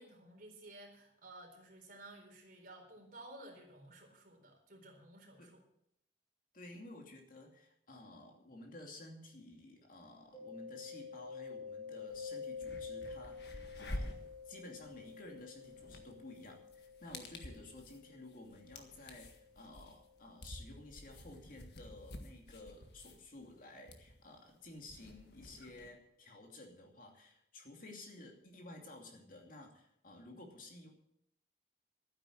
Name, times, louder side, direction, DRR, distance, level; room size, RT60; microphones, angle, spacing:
voice 1, 0.0-5.6, right 2 dB, 50° right, 1 dB, 4.1 m, -54 dB
voice 2, 6.5-14.1 14.5-30.9, left 2 dB, 50° left, 2 dB, 2.7 m, -53 dB
Mallet percussion, 10.3-19.9, left 5 dB, 25° left, 2.0 m, -49 dB
sound 1, 12.1-12.2 12.5-25.9, left 1 dB, 65° left, 1.7 m, -50 dB
12.5 x 10.0 x 7.4 m, 0.74 s
head